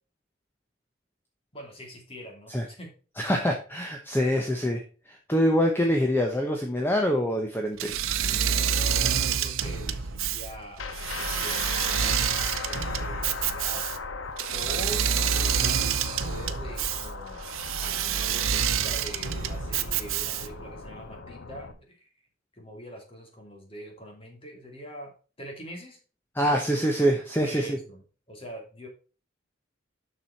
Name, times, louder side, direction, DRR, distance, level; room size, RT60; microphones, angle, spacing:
voice 1, 1.5-2.9 8.7-10.8 11.1-13.8 14.5-17.4 17.8-22.1 22.5-25.1 25.4-26.0 27.4-28.9, equal, 30° left, 1 dB, 2.5 m, -43 dB
voice 2, 3.2-7.9 26.3-27.8, equal, 10° left, 2 dB, 0.9 m, -25 dB
Engine / Mechanisms, 7.8-20.7, right 8 dB, 85° right, 0.7 m, -28 dB
sound 1, 10.8-21.7, left 4 dB, 75° left, 0.9 m, -38 dB
7.3 x 6.2 x 4.1 m, 0.36 s
head